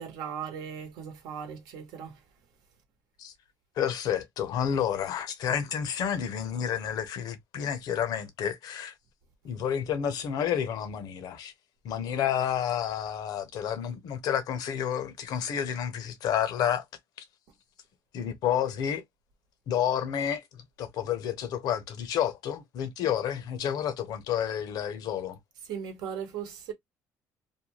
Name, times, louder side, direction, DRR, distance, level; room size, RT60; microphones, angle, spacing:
voice 1, 0.0-2.2 25.7-26.7, right 7 dB, 80° right, 0.9 m, -38 dB
voice 2, 3.8-8.9 9.4-11.5 11.8-16.8 18.1-19.0 19.7-25.4, left 9 dB, 70° left, 0.7 m, -30 dB
2.6 x 2.2 x 3.0 m
cardioid pair, 105°, 7 cm